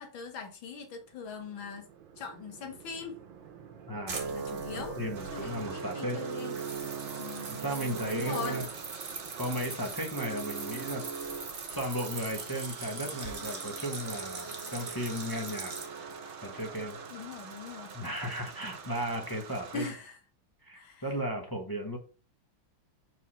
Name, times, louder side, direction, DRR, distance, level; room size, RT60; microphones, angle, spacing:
voice 1, 0.0-1.9 2.2-3.2 4.3-5.0 5.3-6.5 7.2-7.5 8.1-8.6 17.1-17.9 19.7-20.2 20.7-21.0, left 5 dB, 80° left, 2.1 m, -41 dB
sound 1, 1.3-17.5, right 6 dB, 75° right, 1.6 m, -42 dB
voice 2, 3.9-4.3 4.7-6.2 6.5-6.7 7.5-8.7 9.4-11.0 11.7-15.7 16.4-17.0 17.9-19.8 20.6-22.0, equal, 15° left, 0.7 m, -35 dB
sound 2, 4.1-5.7 6.2-15.9, right 4 dB, 35° right, 1.3 m, -42 dB
sound 3, 5.1-19.9, right 5 dB, 55° right, 0.6 m, -47 dB
4.9 x 4.1 x 5.6 m
omnidirectional pair, 2.1 m